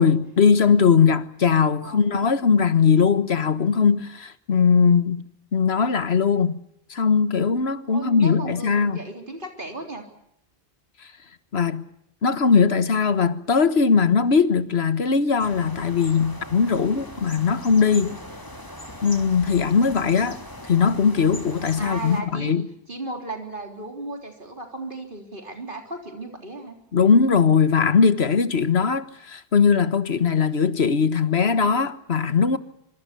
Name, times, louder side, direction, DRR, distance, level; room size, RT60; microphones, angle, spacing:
voice 1, 0.0-5.2 5.5-6.6 6.9-9.0 11.5-11.8 12.2-18.2 19.0-22.7 26.9-32.6, left 6 dB, 85° left, 1.6 m, -20 dB
voice 2, 7.9-10.0 21.8-22.6 22.9-26.8, right 2 dB, 55° right, 3.9 m, -35 dB
sound 1, 15.4-22.2, left 1 dB, 20° left, 3.4 m, -40 dB
26.0 x 24.5 x 6.8 m
omnidirectional pair, 1.0 m